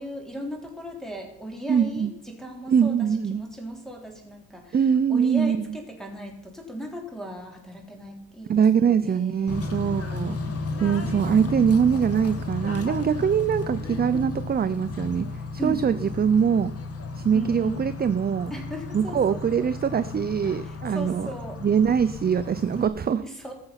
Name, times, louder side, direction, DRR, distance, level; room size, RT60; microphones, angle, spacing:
voice 1, 0.0-9.8 15.6-15.9 17.3-17.8 18.5-19.7 20.6-21.6 23.2-23.5, right 1 dB, ahead, 2 dB, 3.2 m, -37 dB
voice 2, 1.7-2.1 2.7-3.4 4.7-5.6 8.5-10.4 10.8-16.7 17.1-18.5 18.9-21.3 21.6-23.2, right 7 dB, 25° right, 12 dB, 0.5 m, -23 dB
Bird / Train, 9.5-22.9, left 3 dB, 40° left, 1.6 m, -34 dB
20.0 x 6.8 x 5.7 m, 0.78 s
cardioid pair, 140°, 37 cm